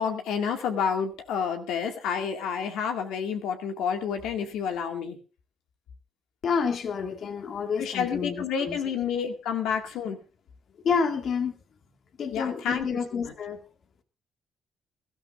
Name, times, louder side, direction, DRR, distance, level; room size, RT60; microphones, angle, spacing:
voice 1, 0.0-5.2 7.8-10.2 12.3-12.9 13.1-13.3, left 7 dB, 90° left, 5 dB, 2.2 m, -29 dB
voice 2, 6.4-8.8 10.8-11.6 12.2-13.6, left 5 dB, 55° left, 7 dB, 1.9 m, -29 dB
23.0 x 13.0 x 2.6 m, 0.31 s
cardioid pair, 90°, 0 cm